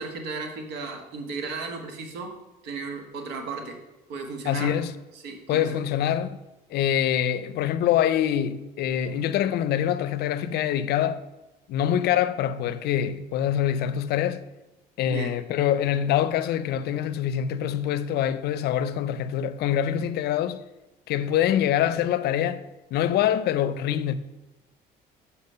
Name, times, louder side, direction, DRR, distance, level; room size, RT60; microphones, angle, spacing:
voice 1, 0.0-2.3 2.6-3.8 4.1-4.8 5.1-5.7 15.0-15.3, right 4 dB, 85° right, 1.3 m, -35 dB
voice 2, 4.5-4.9 5.5-6.4 6.7-11.2 11.7-14.4 15.0-20.6 21.1-22.6 22.9-24.1, left 10 dB, 70° left, 0.5 m, -25 dB
7.2 x 4.2 x 5.5 m
cardioid pair, 110°, 17 cm